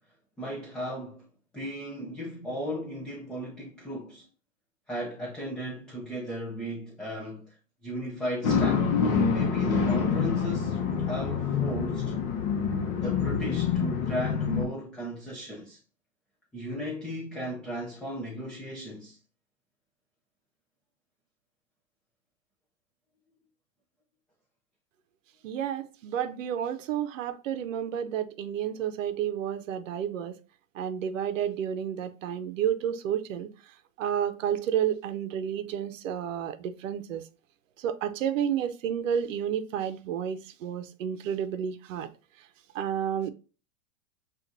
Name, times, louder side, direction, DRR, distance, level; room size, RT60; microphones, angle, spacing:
voice 1, 0.4-1.2 1.5-4.2 4.9-7.6 7.8-8.9 9.2-12.2 13.0-15.8 16.5-19.2, equal, ahead, 0.4 m, -36 dB
sound 1, 8.4-14.7, left 6 dB, 40° left, 0.9 m, -26 dB
voice 2, 25.4-30.4 30.8-33.5 34.0-37.2 37.8-42.1 42.7-43.3, right 9 dB, 70° right, 0.7 m, -31 dB
7.2 x 2.5 x 2.6 m
hypercardioid pair, 130°, 41 cm